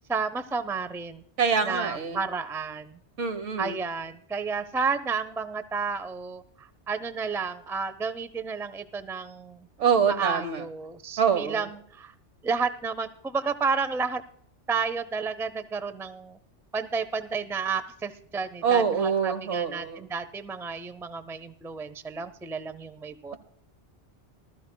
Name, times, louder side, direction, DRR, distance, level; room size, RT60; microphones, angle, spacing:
voice 1, 0.1-1.2 1.6-3.0 3.6-9.7 10.1-12.1 12.4-14.2 14.7-16.4 16.7-23.3, right 5 dB, 5° right, 12 dB, 0.3 m, -31 dB
voice 2, 1.4-2.2 3.2-3.8 9.8-10.6 11.2-11.7 18.6-20.0, right 6 dB, 90° right, 9 dB, 1.5 m, -25 dB
19.5 x 13.5 x 2.2 m, 0.67 s
omnidirectional pair, 1.2 m